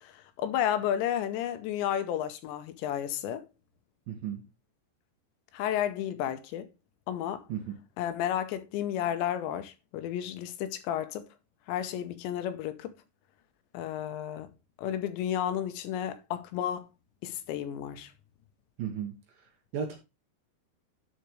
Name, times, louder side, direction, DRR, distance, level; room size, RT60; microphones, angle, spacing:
voice 1, 0.0-3.4 5.5-6.7 7.1-7.4 8.0-11.3 11.7-13.0 13.7-14.5 14.8-16.9 17.2-18.1, left 10 dB, 80° left, 2.9 m, -32 dB
voice 2, 4.1-4.4 7.5-7.7 18.8-19.2 19.7-20.0, right 8 dB, 65° right, 2.6 m, -34 dB
11.5 x 5.0 x 3.1 m
omnidirectional pair, 5.3 m